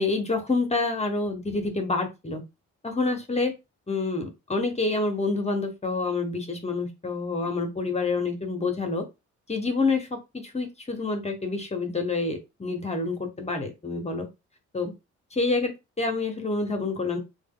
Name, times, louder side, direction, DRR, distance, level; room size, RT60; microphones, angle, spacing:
voice 1, 0.0-2.4 2.8-3.5 3.9-9.0 9.5-14.3 14.7-14.9 15.3-17.2, left 3 dB, 20° left, 5 dB, 0.8 m, -27 dB
2.9 x 2.2 x 3.6 m, 0.25 s
cardioid pair, 90°, 30 cm